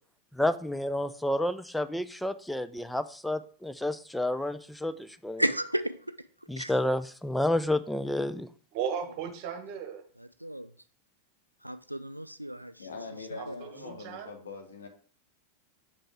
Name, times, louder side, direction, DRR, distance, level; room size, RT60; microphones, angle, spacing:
voice 1, 0.3-5.4 6.5-8.5, left 1 dB, 5° left, 12 dB, 0.4 m, -30 dB
voice 2, 5.4-6.1 6.6-6.8 10.2-10.7 11.6-12.9 13.3-13.7, right 1 dB, 90° right, 12 dB, 0.4 m, -33 dB
voice 3, 8.7-10.0 13.4-14.3, right 8 dB, 45° right, 5 dB, 1.2 m, -36 dB
voice 4, 12.8-14.9, left 4 dB, 65° left, 4 dB, 1.4 m, -43 dB
6.9 x 5.3 x 3.5 m, 0.43 s
figure-of-eight pair, 90°, 0 cm